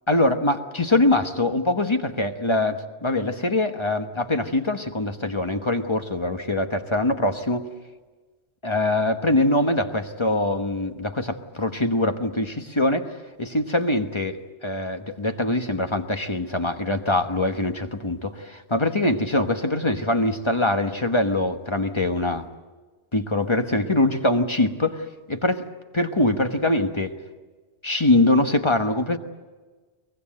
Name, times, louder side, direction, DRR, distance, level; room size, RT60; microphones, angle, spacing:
voice 1, 0.1-7.7 8.6-14.4 14.6-22.4 23.1-25.7 25.9-27.1 27.8-29.2, left 2 dB, 25° left, 6 dB, 1.2 m, -23 dB
23.0 x 20.5 x 7.8 m, 1.3 s
omnidirectional pair, 1.1 m